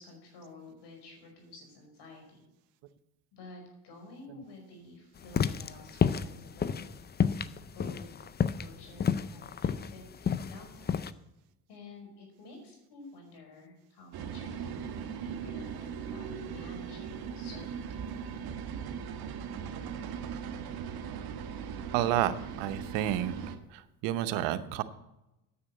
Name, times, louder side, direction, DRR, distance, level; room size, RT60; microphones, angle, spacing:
voice 1, 0.0-2.4 3.3-7.0 7.7-8.2 8.5-11.2 11.7-18.0, left 2 dB, 70° left, 2 dB, 5.3 m, -51 dB
sound 1, 5.2-11.1, left 7 dB, 25° left, 0.5 m, -30 dB
sound 2, 14.1-23.6, right 7 dB, 60° right, 1.4 m, -39 dB
voice 2, 21.9-23.3 23.7-24.8, right 12 dB, 90° right, 12 dB, 0.9 m, -30 dB
9.8 x 7.2 x 8.7 m, 0.92 s
cardioid pair, 95°, 41 cm